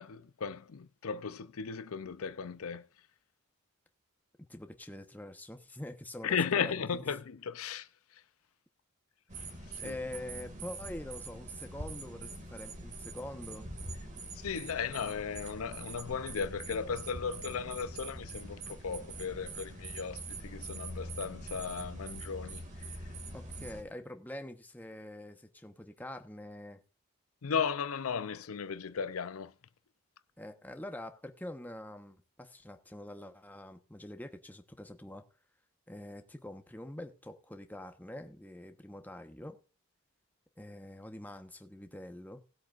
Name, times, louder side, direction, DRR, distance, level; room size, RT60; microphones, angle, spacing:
voice 1, 0.0-2.9 6.2-8.2 9.4-9.9 14.3-22.9 27.4-29.5, left 6 dB, 80° left, 0.6 m, -36 dB
voice 2, 4.4-7.1 9.8-13.7 23.3-26.8 30.4-35.2 35.9-39.6 40.6-42.4, left 1 dB, 10° left, 1.1 m, -45 dB
sound 1, 9.3-23.8, right 2 dB, 35° right, 2.3 m, -44 dB
18.5 x 8.4 x 2.5 m
head